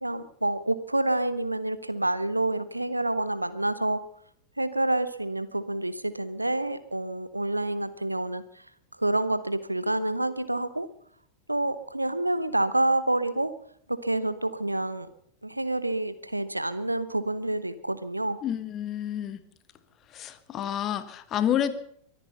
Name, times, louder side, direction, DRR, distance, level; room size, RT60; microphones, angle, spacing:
voice 1, 0.0-4.0 4.6-8.4 9.0-10.9 11.5-13.5 13.9-15.1 15.4-18.4, right 1 dB, 85° right, 14 dB, 1.0 m, -28 dB
voice 2, 18.4-19.4 20.1-21.7, left 10 dB, 30° left, 12 dB, 1.5 m, -29 dB
23.5 x 10.0 x 5.5 m, 0.65 s
figure-of-eight pair, 90°, 0 cm